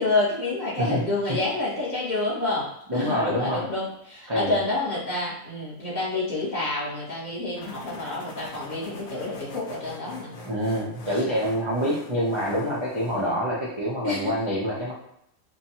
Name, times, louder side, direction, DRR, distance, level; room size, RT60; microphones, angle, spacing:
voice 1, 0.0-10.3 11.1-11.2 13.1-13.3 14.0-14.5, left 2 dB, 35° left, -8 dB, 1.1 m, -28 dB
voice 2, 2.9-3.6 4.3-4.6 10.4-14.9, equal, 45° right, -7 dB, 0.3 m, -26 dB
sound 1, 7.6-13.4, left 2 dB, 60° left, 0.6 m, -43 dB
2.7 x 2.3 x 2.8 m, 0.76 s
omnidirectional pair, 1.4 m